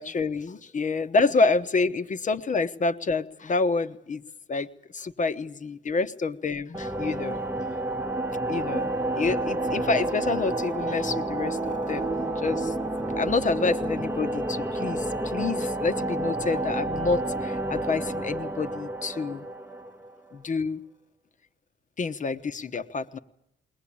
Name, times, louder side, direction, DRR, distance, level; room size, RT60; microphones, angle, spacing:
voice 1, 0.0-4.2 4.5-7.4 8.5-12.7 13.1-19.4 20.3-20.8 22.0-23.2, left 3 dB, 40° left, 10 dB, 1.1 m, -28 dB
sound 1, 6.7-20.3, right 2 dB, 10° right, 1.0 m, -30 dB
21.5 x 19.0 x 8.7 m, 0.84 s
cardioid pair, 90°, 20 cm